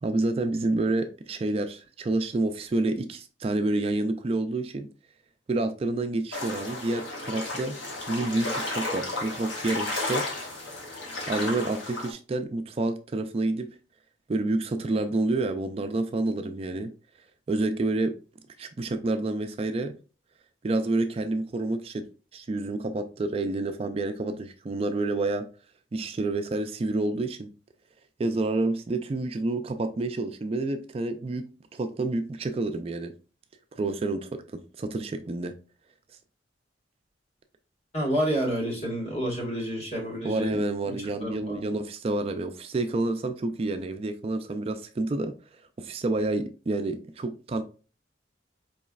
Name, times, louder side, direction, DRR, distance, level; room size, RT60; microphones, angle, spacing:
voice 1, 0.0-4.9 5.5-7.8 8.1-10.3 11.3-13.7 14.3-16.9 17.5-18.1 18.6-19.9 20.6-22.0 22.3-25.5 25.9-27.5 28.2-31.5 31.7-33.1 33.8-35.6 40.2-45.3 45.8-47.6, right 2 dB, 30° right, 0.3 m, -28 dB
sound 1, 6.3-12.1, left 2 dB, 80° left, 1.4 m, -33 dB
voice 2, 37.9-40.6 41.2-41.6, equal, 35° left, 1.5 m, -29 dB
4.7 x 3.1 x 2.3 m
head